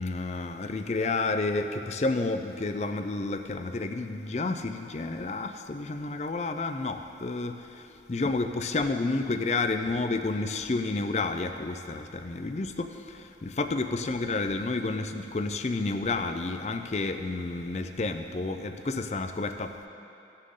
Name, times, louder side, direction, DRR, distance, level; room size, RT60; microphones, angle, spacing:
voice 1, 0.0-19.9, left 3 dB, 40° left, 7 dB, 0.5 m, -30 dB
16.5 x 6.5 x 3.8 m, 2.8 s
head